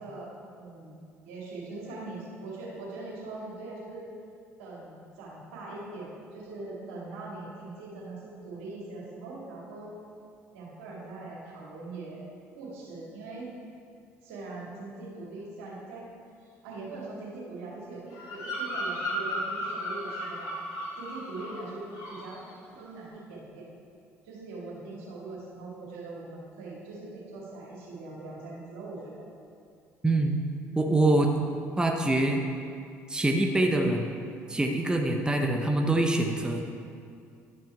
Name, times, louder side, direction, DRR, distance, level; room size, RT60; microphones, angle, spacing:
voice 1, 0.0-4.1 4.6-9.9 10.5-12.2 12.5-13.5 14.2-16.1 16.4-20.5 21.0-23.7 24.2-29.3, right 2 dB, 80° right, -5 dB, 2.4 m, -41 dB
Bird vocalization bird call bird song, 18.1-21.7 21.9-22.3, equal, 60° left, 2.2 m, -34 dB
voice 2, 30.0-30.4 30.8-31.5 31.8-32.4 33.1-34.1 34.5-36.6, right 2 dB, 10° right, 3 dB, 0.8 m, -24 dB
11.5 x 5.5 x 4.5 m, 2.4 s
hypercardioid pair, 60°, 7 cm